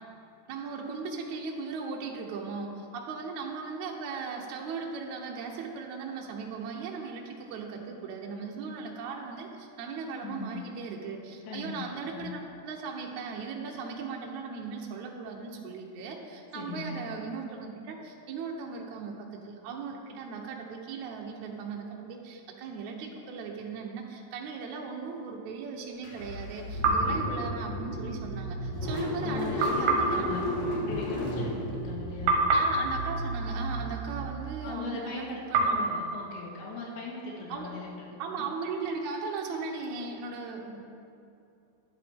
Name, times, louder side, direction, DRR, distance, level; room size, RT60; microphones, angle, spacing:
voice 1, 0.5-30.3 32.5-35.9 37.5-37.7 38.2-40.6, right 4 dB, 85° right, 0 dB, 1.6 m, -38 dB
voice 2, 10.2-10.6 11.5-11.8 12.1-12.3 16.5-17.0 26.9-27.3 29.2-30.4 30.7-32.4 34.6-38.5 40.7-40.8, left 3 dB, 80° left, -2 dB, 4.0 m, -39 dB
Car / Engine starting, 26.0-34.8, equal, 50° left, 2.5 m, -34 dB
sound 1, 26.8-28.2 29.6-31.9 32.3-34.5 35.5-37.4, right 3 dB, 70° right, 2.2 m, -30 dB
11.5 x 11.0 x 3.6 m, 2.6 s
omnidirectional pair, 5.0 m